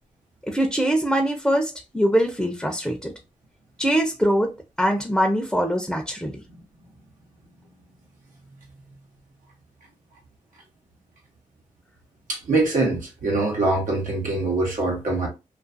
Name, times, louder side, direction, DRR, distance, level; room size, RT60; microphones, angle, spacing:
voice 1, 0.5-3.1 3.8-4.5 4.8-6.4, equal, 5° left, 0.5 m, -22 dB
voice 2, 12.3-15.3, right 2 dB, 85° right, 1.0 m, -23 dB
2.5 x 2.4 x 2.5 m
cardioid pair, 50°, 13 cm